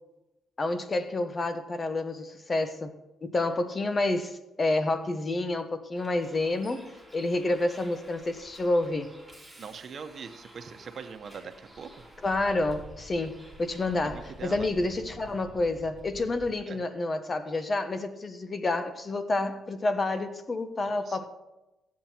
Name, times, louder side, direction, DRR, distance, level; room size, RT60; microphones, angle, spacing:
voice 1, 0.6-3.0 3.2-9.1 12.2-21.3, left 2 dB, 30° left, 1.1 m, -29 dB
Bus, 6.0-16.5, right 1 dB, 5° left, 3.3 m, -50 dB
voice 2, 9.6-12.1 13.9-14.7 16.7-16.8 20.8-21.3, right 6 dB, 50° right, 1.1 m, -42 dB
15.0 x 8.5 x 4.5 m
cardioid pair, 90°, 0 cm